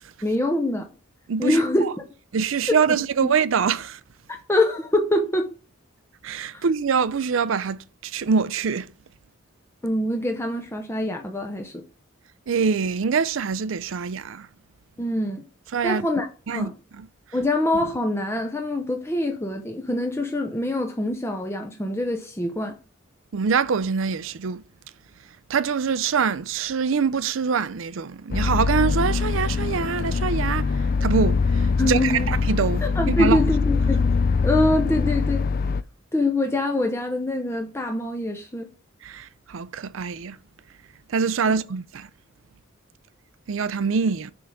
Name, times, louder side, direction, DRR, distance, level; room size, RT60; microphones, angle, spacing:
voice 1, 0.2-0.9 1.4-1.9 2.7-3.3 4.5-5.5 6.5-6.6 9.8-11.8 15.0-15.4 15.8-16.7 17.3-22.8 31.8-32.3 32.8-34.0 34.4-35.5 36.1-38.7 41.5-41.6, left 1 dB, 15° left, 0.7 m, -24 dB
voice 2, 1.3-1.9 2.3-4.0 6.2-8.9 12.5-14.5 15.7-16.1 16.5-17.1 23.3-24.6 25.5-30.7 31.0-33.4 39.0-40.4 41.1-42.1 43.5-44.3, right 6 dB, 75° right, 0.5 m, -24 dB
sound 1, 28.3-35.8, left 4 dB, 45° left, 0.3 m, -23 dB
6.9 x 3.7 x 6.4 m
head